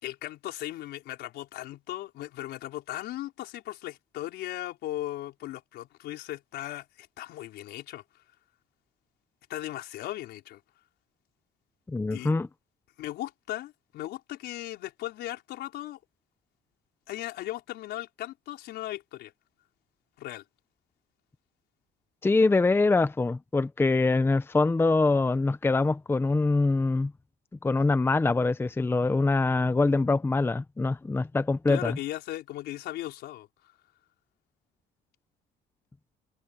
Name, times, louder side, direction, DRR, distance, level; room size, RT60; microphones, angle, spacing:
voice 1, 0.0-8.0 9.5-10.6 12.1-12.3 13.0-16.0 17.1-19.3 20.2-20.4 31.7-33.7, left 14 dB, 80° left, 4.8 m, -37 dB
voice 2, 11.9-12.5 22.2-27.1 27.6-32.0, left 3 dB, 15° left, 0.8 m, -24 dB
cardioid pair, 110°, 17 cm